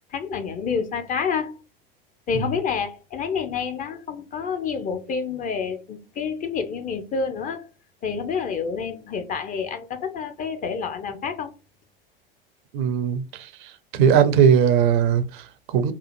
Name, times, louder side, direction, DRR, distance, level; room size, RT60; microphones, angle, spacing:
voice 1, 0.1-1.6 2.3-7.7 8.0-11.5, left 6 dB, 30° left, 0.5 m, -28 dB
voice 2, 12.7-13.2 13.9-15.9, right 8 dB, 60° right, 0.5 m, -18 dB
2.8 x 2.4 x 2.5 m
hypercardioid pair, 85°, 29 cm